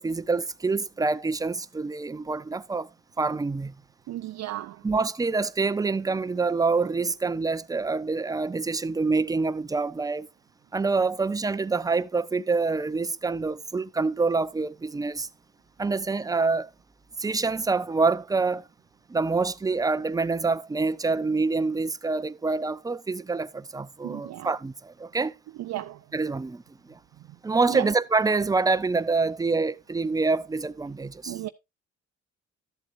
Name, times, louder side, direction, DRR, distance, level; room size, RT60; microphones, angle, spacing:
voice 1, 0.0-2.9 3.2-3.7 4.8-10.3 10.7-15.3 15.8-16.7 17.2-18.7 19.1-25.3 26.1-27.0 27.4-31.4, right 4 dB, 10° right, 0.4 m, -26 dB
voice 2, 4.1-4.8 24.0-24.5 25.6-26.0 27.7-27.9 31.3-31.5, right 14 dB, 65° right, 0.5 m, -34 dB
12.5 x 7.7 x 2.5 m
cardioid pair, 90°, 30 cm